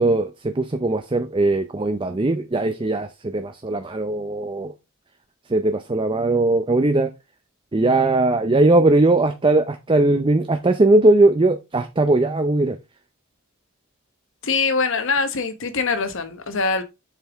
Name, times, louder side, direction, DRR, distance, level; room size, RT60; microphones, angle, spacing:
voice 1, 0.0-4.7 5.5-7.1 7.7-12.8, right 2 dB, 25° right, 0.5 m, -19 dB
voice 2, 14.4-16.8, left 4 dB, 60° left, 1.1 m, -23 dB
7.3 x 5.6 x 3.5 m
head